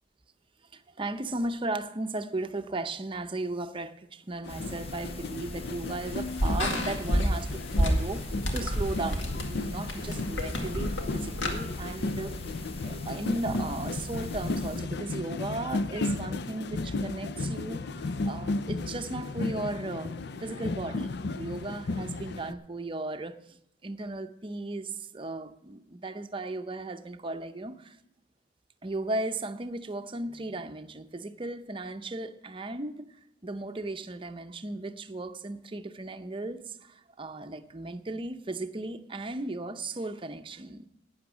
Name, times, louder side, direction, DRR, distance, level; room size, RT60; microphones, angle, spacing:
voice 1, 0.7-12.4 12.8-23.4 23.8-28.0 28.8-33.1 33.4-40.9, right 2 dB, 25° right, 0.7 m, -36 dB
sound 1, 4.4-22.5, left 3 dB, 60° left, 0.5 m, -34 dB
sound 2, 4.5-14.8, left 1 dB, 30° left, 0.9 m, -43 dB
sound 3, 4.9-11.5, equal, 75° left, 2.0 m, -31 dB
11.5 x 9.5 x 6.1 m
head